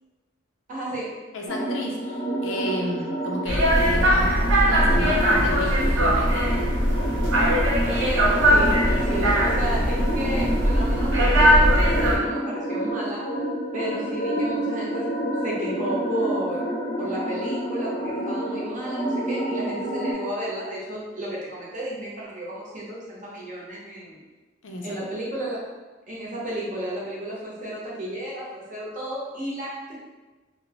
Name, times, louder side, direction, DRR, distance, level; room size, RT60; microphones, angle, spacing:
voice 1, 0.7-1.1 7.8-13.2 13.7-15.1 15.4-16.7 17.0-24.2 24.8-25.6 26.1-29.9, right 1 dB, 40° right, -5 dB, 0.7 m, -32 dB
voice 2, 1.3-6.3 24.6-25.0, left 1 dB, 85° left, 0 dB, 0.5 m, -32 dB
sound 1, 1.5-20.1, right 1 dB, 30° left, 0.7 m, -29 dB
sound 2, 3.5-12.2, equal, 80° right, 0.5 m, -20 dB
2.8 x 2.0 x 2.8 m, 1.2 s
head